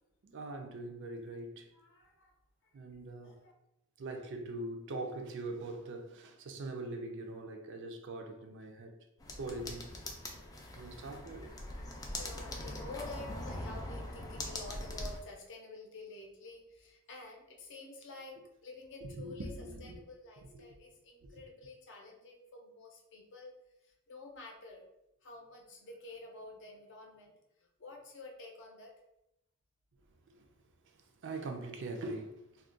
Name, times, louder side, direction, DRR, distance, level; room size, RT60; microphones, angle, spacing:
voice 1, 0.2-1.7 2.7-3.4 4.0-8.9 9.4-10.0 10.7-11.5 19.0-20.0 20.5-20.7 21.2-21.3 30.3-30.5 31.2-32.4, right 2 dB, 55° right, 4 dB, 0.4 m, -42 dB
voice 2, 1.7-2.3 2.6-3.5 12.2-19.5 19.8-23.5 23.8-24.8 25.2-28.9, left 2 dB, 55° left, 1 dB, 0.6 m, -50 dB
sound 1, 9.2-15.2, left 1 dB, 15° left, 0.3 m, -42 dB
2.4 x 2.2 x 3.7 m, 0.88 s
head